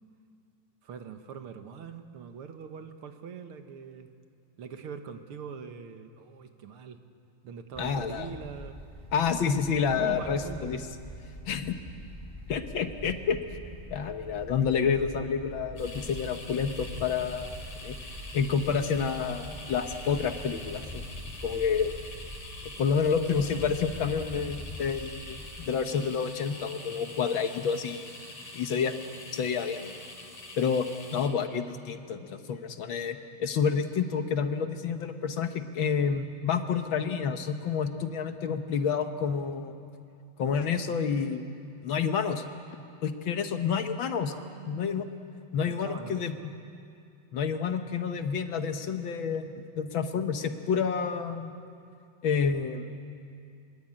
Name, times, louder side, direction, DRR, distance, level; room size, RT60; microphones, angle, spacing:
voice 1, 0.8-4.1 4.6-7.0 7.4-8.8 9.9-10.8 44.3-45.1 45.6-46.5, right 6 dB, 75° right, 7 dB, 2.2 m, -42 dB
sound 1, 7.7-25.7, equal, 5° left, 3.4 m, -44 dB
voice 2, 7.8-8.3 9.1-10.8 11.5-11.8 12.5-13.6 13.9-17.5 17.8-18.0 18.3-21.0 21.4-22.0 22.6-28.1 28.5-28.9 29.3-29.9 30.6-30.9 31.1-39.7 40.4-41.5 41.8-42.4 43.0-44.3 44.7-45.1 45.5-46.3 47.3-49.5 49.8-51.5 52.2-52.9, left 6 dB, 65° left, 7 dB, 1.9 m, -29 dB
sound 2, 15.8-31.3, left 2 dB, 85° left, 4.4 m, -45 dB
24.5 x 21.5 x 8.8 m, 2.5 s
omnidirectional pair, 2.4 m